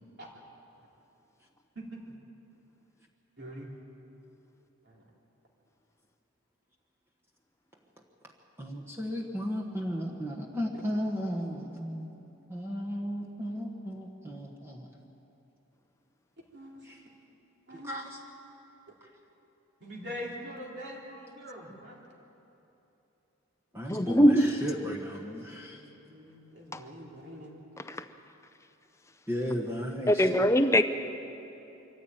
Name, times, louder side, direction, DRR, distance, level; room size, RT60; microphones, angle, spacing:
voice 1, 1.7-2.2 3.4-3.7 4.8-5.0 16.5-16.8 17.7-18.0 19.8-22.0 25.7-27.5, equal, 50° right, -3 dB, 3.3 m, -43 dB
voice 2, 8.6-12.1 12.5-14.9 16.8-17.0 17.8-18.2 23.7-25.8 29.3-30.5, equal, 10° right, -1 dB, 1.4 m, -35 dB
voice 3, 23.9-24.5 26.7-26.8 27.9-28.0 30.1-30.8, equal, 15° left, 9 dB, 0.7 m, -21 dB
24.0 x 14.5 x 9.0 m, 3.0 s
head